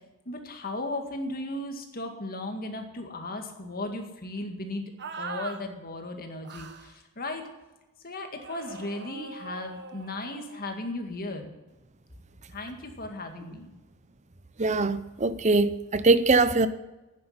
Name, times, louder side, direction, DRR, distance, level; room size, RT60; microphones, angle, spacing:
voice 1, 0.3-4.9 5.2-7.4 8.0-11.5 12.5-13.7, left 2 dB, 40° left, 2.0 m, -36 dB
sound 1, 5.0-5.6 6.4-6.9 8.4-10.8, right 4 dB, 50° right, 1.1 m, -42 dB
voice 2, 14.6-16.7, right 3 dB, 30° right, 0.7 m, -22 dB
10.0 x 9.7 x 9.5 m
head